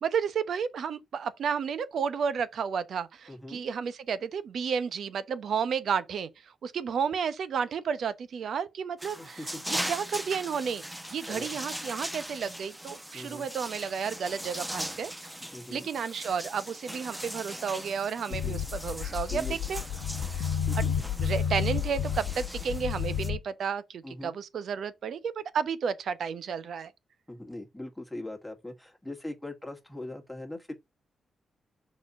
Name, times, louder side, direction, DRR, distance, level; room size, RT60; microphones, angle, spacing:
voice 1, 0.0-10.8 11.1-15.3 15.7-19.8 20.3-20.5 20.8-20.9 21.1-26.9, right 6 dB, 70° right, 0.9 m, -32 dB
voice 2, 3.3-3.6 9.2-9.9 11.3-11.6 13.1-13.5 15.5-15.9 18.3-18.6 19.3-19.6 20.7-20.9 24.0-24.3 27.3-30.8, left 1 dB, 10° left, 2.0 m, -41 dB
sound 1, 9.0-23.3, equal, 10° right, 1.0 m, -40 dB
sound 2, 18.3-23.4, left 8 dB, 85° left, 0.7 m, -31 dB
6.2 x 4.3 x 4.9 m
supercardioid pair, 50°, 0 cm